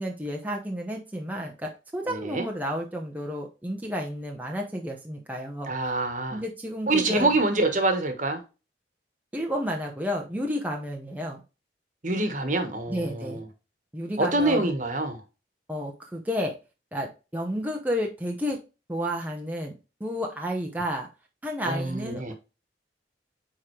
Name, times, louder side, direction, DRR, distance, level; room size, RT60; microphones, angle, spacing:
voice 1, 0.0-5.9 6.3-7.3 9.3-11.4 12.9-13.4 13.9-14.7 15.7-16.5 16.9-18.6 18.9-19.7 20.0-21.1 21.4-22.3, equal, 10° right, 0.8 m, -31 dB
voice 2, 2.0-2.5 5.7-6.4 6.9-8.4 12.0-13.4 14.2-15.2 21.6-22.3, right 2 dB, 45° right, 1.3 m, -26 dB
9.0 x 3.8 x 3.2 m
head